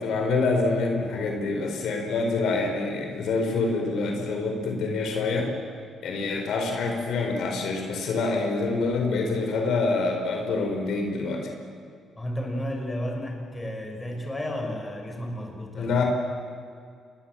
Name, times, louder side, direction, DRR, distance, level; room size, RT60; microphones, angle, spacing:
voice 1, 0.0-5.5 6.0-11.5 15.7-16.0, left 3 dB, 75° left, 3 dB, 4.4 m, -26 dB
voice 2, 12.2-16.1, equal, 15° left, 2 dB, 5.5 m, -33 dB
27.0 x 21.0 x 7.5 m, 2.2 s
cardioid pair, 90°, 0 cm